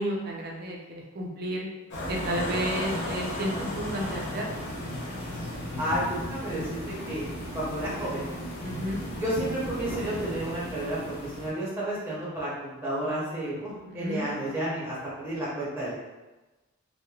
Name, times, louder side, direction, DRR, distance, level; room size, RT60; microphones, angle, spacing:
voice 1, 0.0-1.7 2.1-4.6 8.6-9.0 13.8-14.4, equal, 50° right, -1 dB, 0.5 m, -32 dB
sound 1, 1.9-11.5, equal, 55° left, 0.6 m, -35 dB
voice 2, 5.8-7.2 7.5-8.3 9.2-15.9, right 1 dB, 10° right, -8 dB, 0.7 m, -31 dB
3.0 x 2.1 x 2.3 m, 1.1 s
head